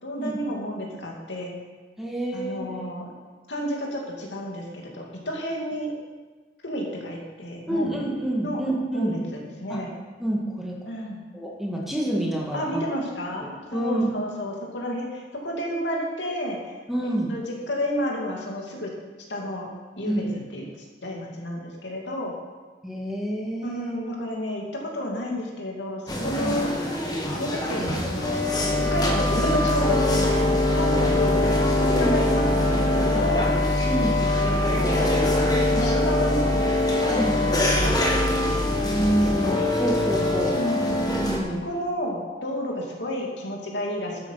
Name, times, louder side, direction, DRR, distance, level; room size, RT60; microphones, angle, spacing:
voice 1, 0.0-1.5 2.3-3.1 3.5-5.9 6.6-8.0 8.4-8.6 8.9-9.9 10.8-11.2 12.5-16.7 17.3-18.9 19.3-19.7 20.0-20.6 21.0-22.3 23.6-26.7 27.3-28.4 28.8-30.1 30.7-31.4 31.8-33.6 34.4-35.2 35.7-36.5 37.0-38.2 39.2-39.4 40.5-41.0 41.6-44.2, equal, 80° left, -1 dB, 2.7 m, -31 dB
voice 2, 2.0-2.9 7.7-9.2 9.7-9.8 10.2-10.7 11.3-12.8 13.7-14.1 16.9-17.3 20.0-20.3 22.8-23.9 26.2-26.5 33.9-34.2 37.1-37.3 38.8-40.6 41.2-41.6, right 1 dB, ahead, -2 dB, 2.0 m, -28 dB
sound 1, 26.1-41.4, left 1 dB, 20° left, 1.6 m, -22 dB
12.5 x 9.2 x 5.8 m, 1.4 s
head